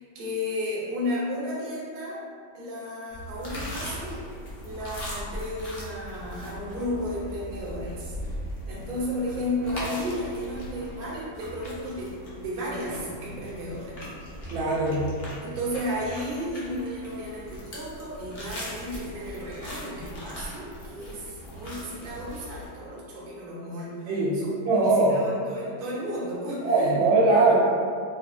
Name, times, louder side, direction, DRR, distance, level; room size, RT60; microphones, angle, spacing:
voice 1, 0.0-2.2 2.5-4.2 4.6-8.1 8.7-14.0 14.9-15.1 15.4-26.9, left 1 dB, 50° right, -7 dB, 0.6 m, -33 dB
sound 1, 3.1-22.7, equal, 75° left, 0.5 m, -39 dB
voice 2, 14.5-15.1 24.1-24.3 24.7-25.2 26.6-27.5, right 3 dB, 90° right, -5 dB, 1.6 m, -21 dB
4.8 x 2.3 x 2.4 m, 2.1 s
omnidirectional pair, 2.1 m